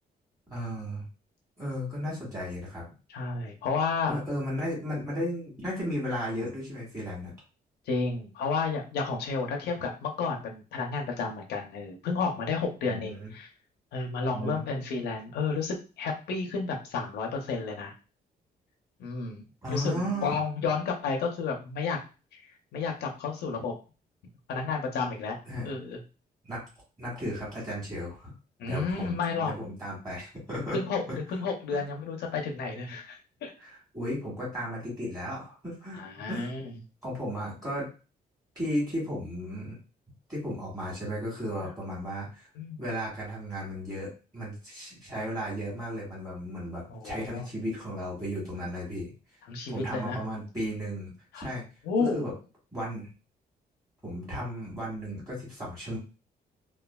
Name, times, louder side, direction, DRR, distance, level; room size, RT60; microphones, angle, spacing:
voice 1, 0.5-1.0 1.6-2.8 4.1-7.3 12.8-13.3 14.3-14.7 19.6-20.4 25.5-25.7 26.4-26.6 27.0-28.3 28.7-30.8 31.1-31.2 31.7-31.8 33.6-36.5 37.0-37.9 38.5-39.8 40.3-42.5 42.8-49.1 49.7-51.6 52.0-52.3 52.7-53.1 54.0-56.0, equal, 20° right, -6 dB, 1.5 m, -35 dB
voice 2, 3.1-4.2 7.9-13.5 13.9-17.9 19.0-19.4 19.7-22.0 22.3-23.7 24.5-25.4 25.6-26.0 28.6-29.5 30.7-33.5 35.9-36.7 41.6-41.7 42.6-42.8 46.9-47.5 49.5-50.2 51.3-51.5 51.8-52.3, left 4 dB, 85° left, 1 dB, 0.6 m, -31 dB
3.1 x 2.3 x 2.2 m, 0.32 s
cardioid pair, 140°, 17 cm